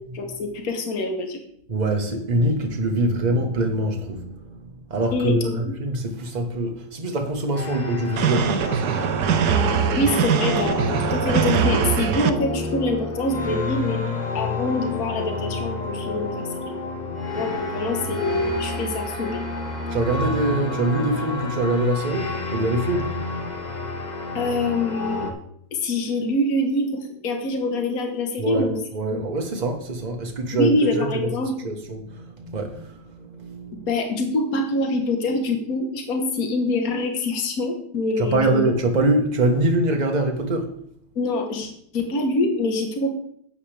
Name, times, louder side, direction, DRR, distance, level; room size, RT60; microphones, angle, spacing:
voice 1, 0.1-1.4 5.1-5.7 10.0-16.7 17.3-19.5 24.4-25.3 25.7-28.8 30.6-31.7 33.9-38.6 41.2-43.1, left 2 dB, 60° left, 1.8 m, -25 dB
voice 2, 1.7-9.0 17.0-17.5 19.8-23.5 28.4-31.3 31.6-33.9 38.2-40.8, right 1 dB, 30° right, 1.3 m, -24 dB
sound 1, 7.5-25.3, left 3 dB, 30° left, 1.2 m, -29 dB
sound 2, 8.2-12.3, right 8 dB, 80° right, 1.3 m, -22 dB
12.0 x 8.8 x 3.4 m
omnidirectional pair, 1.7 m